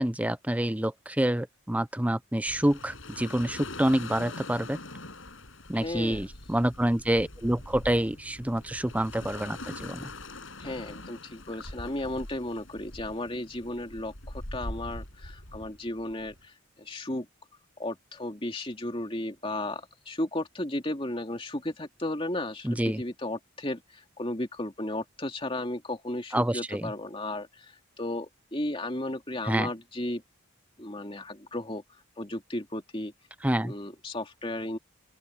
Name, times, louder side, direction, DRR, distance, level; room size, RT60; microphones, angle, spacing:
voice 1, 0.0-4.8 5.7-10.1 22.6-23.0 26.3-26.9 29.5-29.7 33.4-33.7, right 1 dB, 5° right, 0.5 m, -27 dB
sound 1, 2.5-16.4, left 2 dB, 65° left, 7.4 m, -43 dB
voice 2, 5.7-6.2 10.6-17.3 17.8-30.2 30.8-31.8 32.2-33.1 33.6-34.8, left 1 dB, 25° left, 2.7 m, -34 dB
open air
head